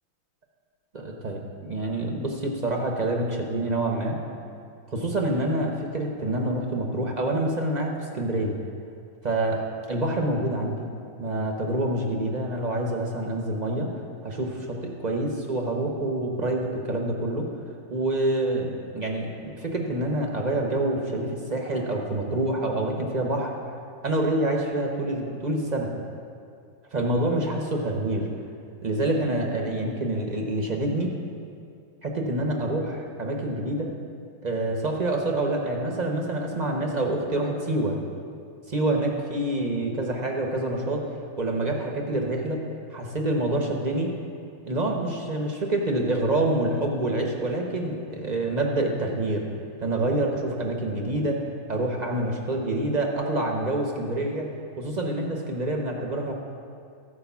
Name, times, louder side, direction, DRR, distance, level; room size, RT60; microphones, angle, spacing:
voice 1, 0.9-4.1 4.9-8.6 9.2-9.6 9.9-10.9 11.2-13.9 14.2-17.5 17.9-23.5 24.0-25.9 26.9-28.3 28.8-31.1 32.0-33.9 34.4-38.0 38.7-41.1 41.4-42.6 42.9-44.1 44.6-49.4 49.8-51.4 51.7-54.5 54.8-56.3, right 1 dB, 45° right, 1 dB, 0.5 m, -27 dB
13.5 x 4.9 x 7.1 m, 2.4 s
omnidirectional pair, 2.1 m